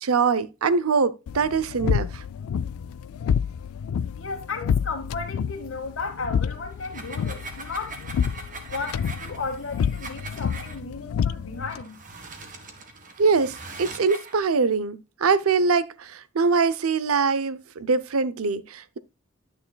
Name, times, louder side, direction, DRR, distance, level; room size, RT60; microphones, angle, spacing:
voice 1, 0.0-2.2 13.2-19.0, right 4 dB, 90° right, 0.6 m, -23 dB
sound 1, 1.3-11.8, left 7 dB, 80° left, 0.3 m, -29 dB
voice 2, 4.2-8.0 8.7-12.0, left 4 dB, 65° left, 1.6 m, -34 dB
sound 2, 6.7-10.8 11.6-14.4, right 3 dB, 40° right, 1.4 m, -41 dB
10.5 x 6.5 x 2.3 m
head